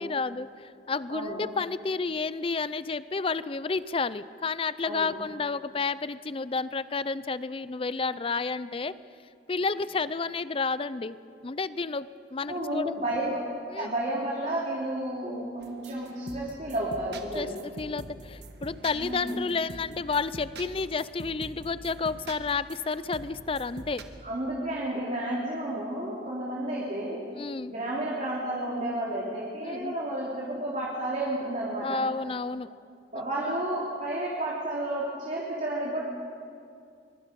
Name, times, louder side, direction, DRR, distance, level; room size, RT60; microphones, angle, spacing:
voice 1, 0.0-8.9 9.5-11.2 11.4-12.9 13.7-13.9 17.3-17.5 17.8-24.0 27.3-27.7 29.6-29.9 31.8-32.7, left 4 dB, 30° left, 16 dB, 0.5 m, -31 dB
voice 2, 1.1-1.4 4.8-5.1 12.5-13.4 13.7-17.5 18.9-19.4 24.2-27.3 27.7-32.0 33.1-36.0, right 1 dB, 40° right, -5 dB, 3.2 m, -31 dB
sound 1, 15.6-24.0, right 2 dB, 65° right, 1.6 m, -45 dB
24.0 x 22.5 x 5.3 m, 2.4 s
head